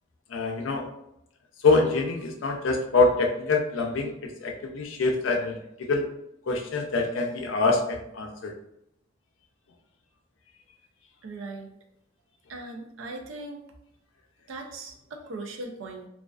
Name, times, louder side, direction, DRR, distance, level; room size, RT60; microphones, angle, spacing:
voice 1, 0.3-0.9 1.6-6.0 6.5-8.5, left 3 dB, 75° left, 3 dB, 0.4 m, -25 dB
voice 2, 11.2-11.7 12.5-13.6 14.5-16.1, right 2 dB, 80° right, 3 dB, 0.4 m, -39 dB
2.3 x 2.3 x 2.3 m, 0.78 s
head